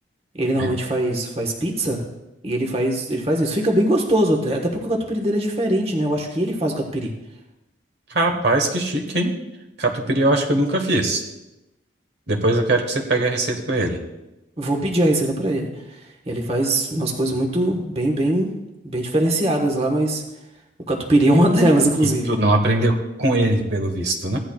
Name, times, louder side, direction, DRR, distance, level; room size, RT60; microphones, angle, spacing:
voice 1, 0.4-2.1 2.4-7.1 14.6-16.0 16.3-18.5 18.8-20.2 20.9-22.4, right 1 dB, 30° right, 1 dB, 1.3 m, -21 dB
voice 2, 8.1-9.3 9.8-11.2 12.3-14.0 22.3-24.4, right 1 dB, 55° right, 2 dB, 1.3 m, -21 dB
16.0 x 11.0 x 2.3 m, 0.97 s
head